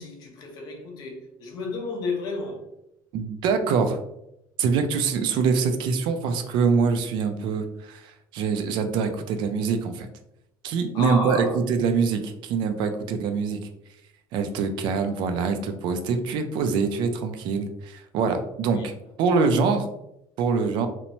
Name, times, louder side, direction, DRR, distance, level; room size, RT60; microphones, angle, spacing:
voice 1, 0.0-2.6 10.9-11.6 18.6-18.9, left 3 dB, 50° left, 0.7 m, -32 dB
voice 2, 3.1-4.0 4.6-10.1 10.6-13.6 14.3-18.9 19.2-19.9 20.4-20.9, right 5 dB, 60° right, 0.3 m, -24 dB
2.9 x 2.0 x 2.6 m
cardioid pair, 155°, 9 cm